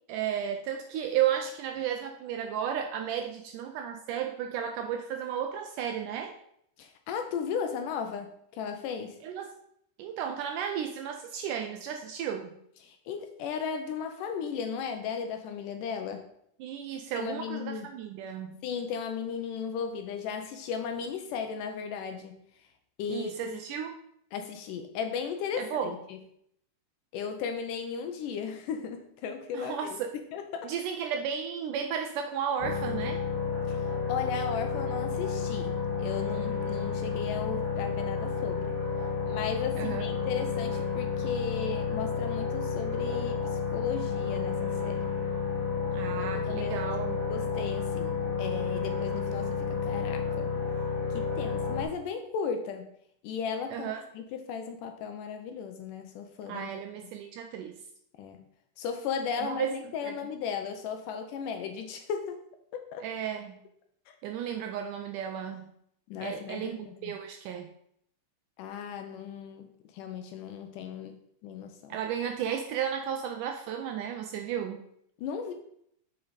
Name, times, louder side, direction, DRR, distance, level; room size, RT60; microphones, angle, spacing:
voice 1, 0.1-6.3 9.2-9.5 10.0-12.6 16.6-18.6 23.1-24.0 25.6-25.9 29.5-30.1 30.6-33.2 39.8-40.0 45.9-47.2 53.7-54.0 56.5-57.7 59.4-59.7 60.0-60.1 63.0-63.6 64.2-65.7 66.2-67.7 71.9-74.8, right 9 dB, 80° right, 5 dB, 1.9 m, -33 dB
voice 2, 6.8-9.2 12.8-16.3 17.1-17.9 18.6-22.4 23.0-23.6 24.3-26.2 27.1-29.8 30.3-30.7 33.7-38.8 39.3-45.1 46.2-46.8 47.3-50.5 51.1-52.9 53.2-56.8 58.2-58.5 58.8-62.4 62.7-63.1 64.1-64.2 66.1-67.1 68.6-72.0 75.2-75.5, left 6 dB, 80° left, 6 dB, 2.0 m, -36 dB
sound 1, 32.6-51.8, left 5 dB, 30° left, 3.5 m, -31 dB
6.9 x 5.3 x 4.0 m, 0.71 s
omnidirectional pair, 4.1 m